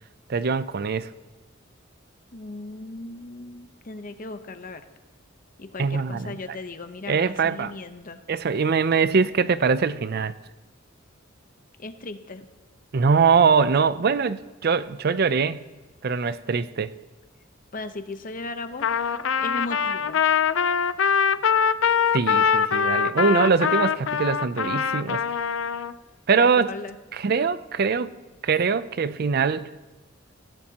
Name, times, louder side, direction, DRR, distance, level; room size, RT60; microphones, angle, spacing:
voice 1, 0.3-1.1 5.8-6.4 7.1-7.7 8.3-10.3 12.9-15.6 16.0-16.9 22.1-25.2 26.3-26.7 27.1-28.1 28.4-29.7, right 5 dB, 55° right, 0.5 m, -22 dB
voice 2, 2.3-4.8 5.6-8.2 11.8-12.5 17.7-18.9 19.4-20.2 26.4-27.0, left 3 dB, 45° left, 0.9 m, -37 dB
Trumpet, 18.8-25.9, left 7 dB, 85° left, 0.5 m, -23 dB
22.0 x 15.5 x 2.9 m
head